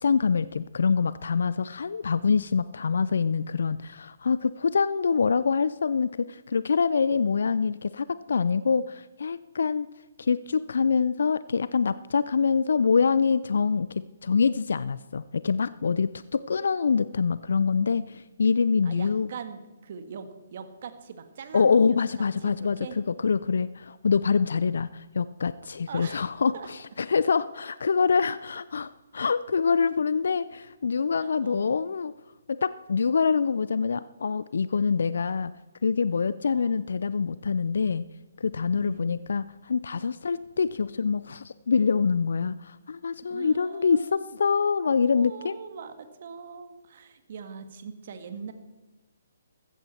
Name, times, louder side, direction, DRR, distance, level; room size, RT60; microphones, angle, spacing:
voice 1, 0.0-9.9 10.2-19.3 21.5-22.8 23.2-32.1 32.5-35.5 35.8-38.0 38.4-45.6, left 5 dB, 70° left, 16 dB, 0.4 m, -25 dB
voice 2, 18.8-22.0 22.4-23.0 25.9-26.3 26.5-26.7 31.2-31.7 36.5-36.9 38.8-39.2 43.3-44.1 45.2-48.5, right 6 dB, 55° right, 9 dB, 1.7 m, -41 dB
14.5 x 14.0 x 4.4 m, 1.1 s
figure-of-eight pair, 135°, 0 cm